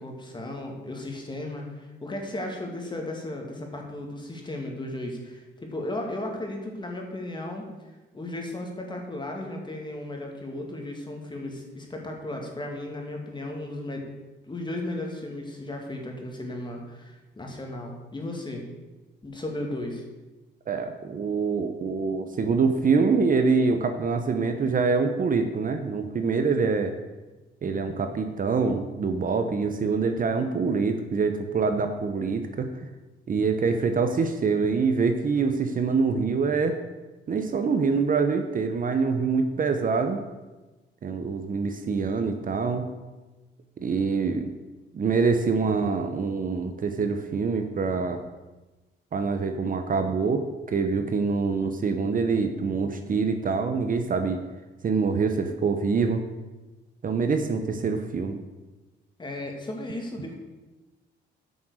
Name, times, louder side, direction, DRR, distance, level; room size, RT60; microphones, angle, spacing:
voice 1, 0.0-7.6 8.1-14.1 14.4-18.6 19.2-20.0 59.2-60.3, left 1 dB, 25° left, 1 dB, 2.4 m, -35 dB
voice 2, 20.7-26.9 27.6-32.7 33.3-36.8 37.3-40.2 41.0-42.9 43.8-44.4 44.9-48.2 49.1-54.4 54.8-56.2 57.0-58.4, right 4 dB, 45° right, 7 dB, 0.9 m, -25 dB
9.1 x 6.2 x 6.4 m, 1.1 s
cardioid pair, 90°, 20 cm